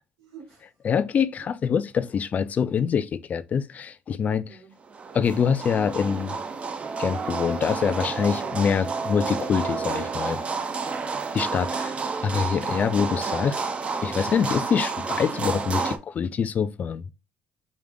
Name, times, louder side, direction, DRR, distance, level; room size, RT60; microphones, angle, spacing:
voice 1, 0.2-1.0 4.4-4.7 10.8-12.1, right 5 dB, 90° right, 1.7 m, -49 dB
voice 2, 0.8-4.5 5.1-6.4 7.0-10.4 11.3-11.9 12.2-13.6 14.0-17.0, left 7 dB, 40° left, 0.4 m, -25 dB
sound 1, 4.9-16.0, right 4 dB, 30° right, 0.5 m, -30 dB
4.9 x 2.4 x 3.6 m
cardioid pair, 115°, 4 cm